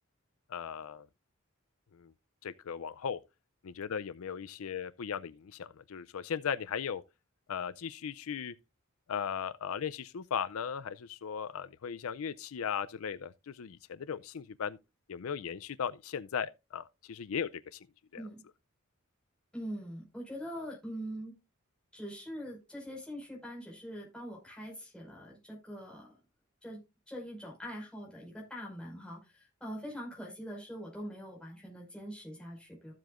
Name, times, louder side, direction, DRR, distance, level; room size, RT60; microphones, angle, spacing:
voice 1, 0.5-1.1 2.0-2.1 2.4-3.2 3.6-7.0 7.5-8.5 9.1-14.8 15.1-17.8 18.1-18.2, left 7 dB, 85° left, 0.5 m, -37 dB
voice 2, 19.5-21.3 21.9-26.2 26.6-32.9, equal, 5° left, 5.2 m, -43 dB
14.5 x 7.7 x 2.5 m
head